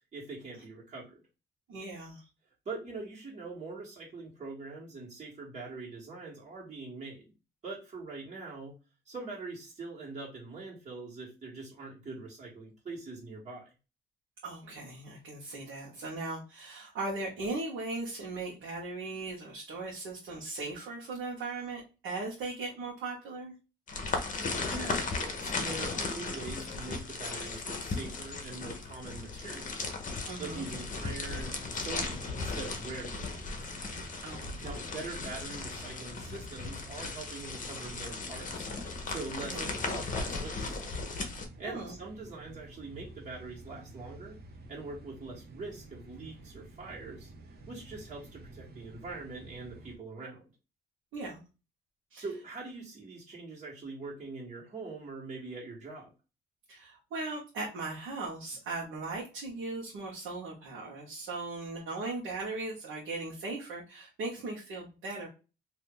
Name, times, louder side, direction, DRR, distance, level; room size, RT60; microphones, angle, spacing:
voice 1, 0.1-1.2 2.6-7.2 7.6-8.7 9.0-13.7 24.6-29.9 30.4-33.8 34.6-38.7 39.1-40.8 41.6-44.4 44.7-47.3 47.7-50.4 52.2-56.1, right 3 dB, 35° right, -4 dB, 1.7 m, -43 dB
voice 2, 1.7-2.2 14.4-23.5 30.3-30.7 34.2-34.7 39.4-39.7 41.6-42.0 51.1-51.4 52.1-52.2 56.7-65.3, right 3 dB, 85° right, -4 dB, 1.1 m, -38 dB
sound 1, 23.9-41.4, left 3 dB, 40° left, 0.9 m, -36 dB
sound 2, 30.2-50.0, right 2 dB, 55° right, 0.8 m, -51 dB
2.7 x 2.6 x 3.7 m, 0.30 s
cardioid pair, 90°, 20 cm